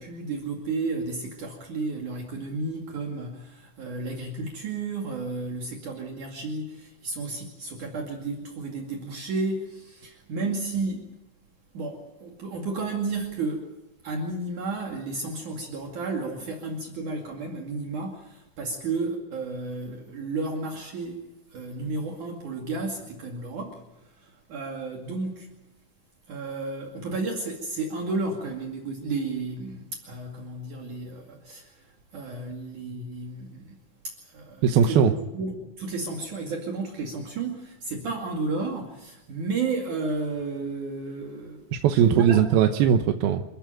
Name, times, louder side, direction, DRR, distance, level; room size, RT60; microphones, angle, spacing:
voice 1, 0.0-11.1 11.7-13.7 14.0-21.2 21.5-25.5 26.3-33.8 34.0-41.6 42.0-42.4, right 3 dB, 60° right, 0 dB, 3.7 m, -32 dB
voice 2, 34.6-35.1 41.7-43.4, right 8 dB, 90° right, 5 dB, 2.9 m, -19 dB
27.5 x 14.5 x 9.2 m, 0.95 s
omnidirectional pair, 4.2 m